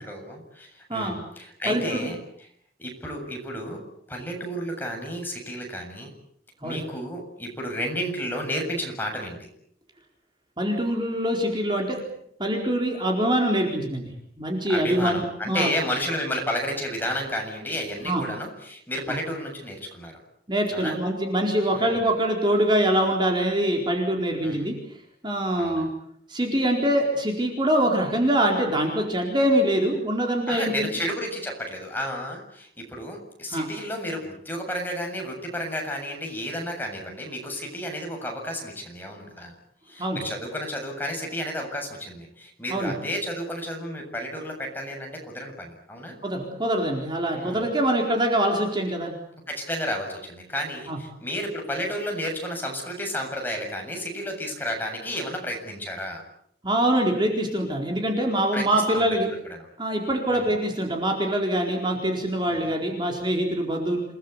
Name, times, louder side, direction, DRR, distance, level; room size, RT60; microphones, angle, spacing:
voice 1, 0.0-2.2 2.8-3.8 4.1-6.1 6.6-9.5 14.7-20.2 20.7-21.0 21.7-22.0 24.4-24.7 25.5-25.9 30.5-39.5 39.9-46.1 47.3-47.7 49.5-56.2 58.5-59.1 60.3-60.5 62.5-62.8, equal, 10° left, 1 dB, 7.4 m, -32 dB
voice 2, 1.7-2.1 6.6-6.8 10.6-12.0 12.4-14.1 14.4-15.7 18.0-18.2 19.1-19.2 20.5-24.8 25.2-25.9 26.3-30.9 33.5-33.7 40.0-40.2 42.7-42.9 46.2-49.1 50.9-51.0 56.6-59.3 59.8-64.0, right 1 dB, 25° right, 1 dB, 4.4 m, -24 dB
29.0 x 20.0 x 8.3 m, 0.69 s
head